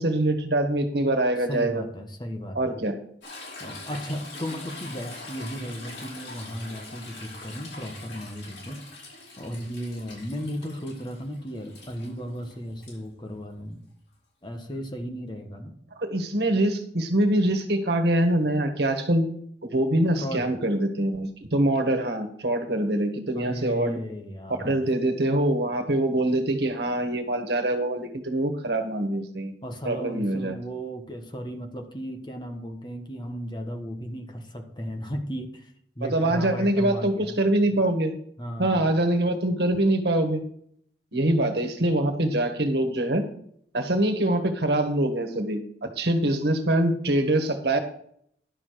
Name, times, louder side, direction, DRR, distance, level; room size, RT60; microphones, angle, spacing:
voice 1, 0.0-1.8 2.5-2.9 16.0-19.3 19.6-24.0 24.6-29.5 29.8-30.5 36.1-38.1 38.6-40.4 41.1-43.2 43.7-47.8, right 1 dB, 70° right, 5 dB, 1.6 m, -24 dB
voice 2, 1.5-2.8 3.6-8.8 9.4-13.8 14.4-15.7 20.2-20.5 23.3-24.8 29.6-37.4 38.4-38.9, equal, 25° left, 4 dB, 1.3 m, -35 dB
Toilet flush / Trickle dribble, 3.2-12.9 14.7-14.8, left 2 dB, 90° left, 5.1 m, -43 dB
11.5 x 6.8 x 4.7 m, 0.67 s
head